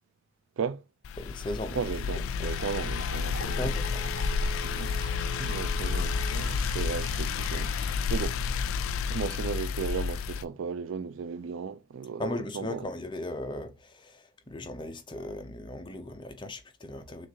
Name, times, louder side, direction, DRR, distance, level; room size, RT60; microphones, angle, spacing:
sound 1, 1.0-10.4, left 5 dB, 80° left, 0.3 m, -30 dB
voice 1, 1.2-1.8 2.1-2.5 3.4-4.5 12.2-17.3, left 1 dB, 25° left, 0.6 m, -38 dB
voice 2, 1.8-3.7 4.6-5.0 5.4-8.4 9.1-12.8, right 6 dB, 70° right, 0.4 m, -35 dB
sound 2, 2.3-8.3, right 3 dB, 50° right, 1.1 m, -46 dB
Telephone, 3.4-6.5 6.9-7.0, right 4 dB, 15° right, 0.9 m, -45 dB
6.3 x 2.5 x 2.8 m
head